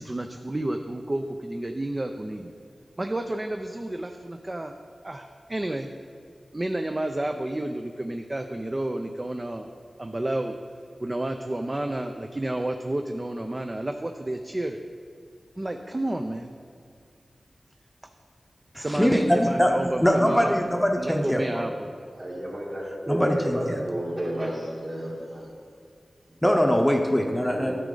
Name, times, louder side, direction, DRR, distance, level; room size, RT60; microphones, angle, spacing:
voice 1, 0.0-2.5 3.0-4.7 5.0-5.9 6.5-9.7 10.0-10.5 11.0-14.8 15.6-16.6 18.7-20.6 21.0-22.0, right 1 dB, 30° right, 5 dB, 0.4 m, -30 dB
voice 2, 18.7-21.6 23.1-23.8 26.4-27.8, equal, 10° left, 2 dB, 0.7 m, -22 dB
voice 3, 22.2-25.4 27.5-27.8, equal, 50° right, -5 dB, 2.4 m, -31 dB
10.5 x 6.1 x 3.8 m, 2.2 s
wide cardioid pair, 55°, 0 cm